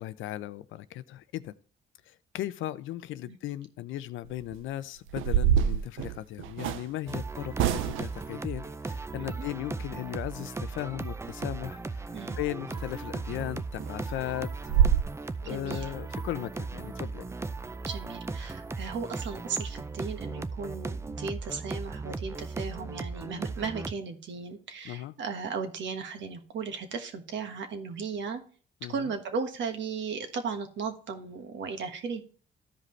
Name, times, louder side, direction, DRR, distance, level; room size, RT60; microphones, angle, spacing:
voice 1, 0.0-1.5 2.3-12.0 12.4-14.5 15.4-17.2 24.8-25.1 28.8-29.1, left 14 dB, 85° left, 16 dB, 0.5 m, -37 dB
sound 1, 4.3-4.6 5.1-6.9 7.6-8.2 12.7-12.9 13.3-13.4 13.8-13.9 14.3-14.4 14.7-15.0, right 9 dB, 85° right, 0.5 m, -25 dB
sound 2, 7.1-23.9, right 3 dB, 15° right, 0.4 m, -37 dB
voice 2, 15.4-15.9 17.9-28.4 28.9-32.2, right 5 dB, 65° right, 7 dB, 1.4 m, -36 dB
13.5 x 5.1 x 3.2 m, 0.41 s
cardioid pair, 90°, 20 cm